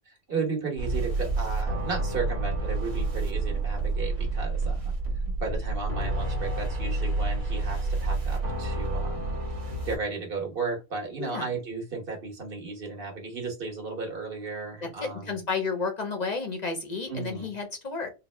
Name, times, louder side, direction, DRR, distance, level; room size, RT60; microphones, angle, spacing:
voice 1, 0.0-4.9 5.2-9.3 9.8-15.4 17.1-17.5, right 4 dB, 45° right, 1 dB, 1.4 m, -34 dB
sound 1, 0.8-9.9, right 2 dB, 65° right, 1.3 m, -29 dB
voice 2, 11.2-11.5 14.8-18.1, left 4 dB, 45° left, 4 dB, 0.6 m, -32 dB
3.8 x 2.1 x 3.2 m, 0.26 s
omnidirectional pair, 1.4 m